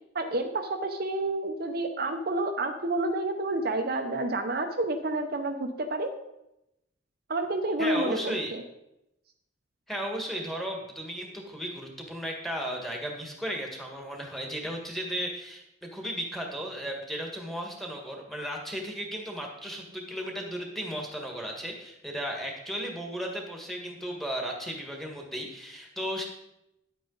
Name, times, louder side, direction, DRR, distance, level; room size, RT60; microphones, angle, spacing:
voice 1, 0.1-6.1 7.3-8.6, right 2 dB, 50° right, 5 dB, 0.7 m, -29 dB
voice 2, 7.8-8.5 9.9-26.2, equal, ahead, 1 dB, 1.6 m, -35 dB
10.5 x 8.6 x 4.0 m, 0.86 s
head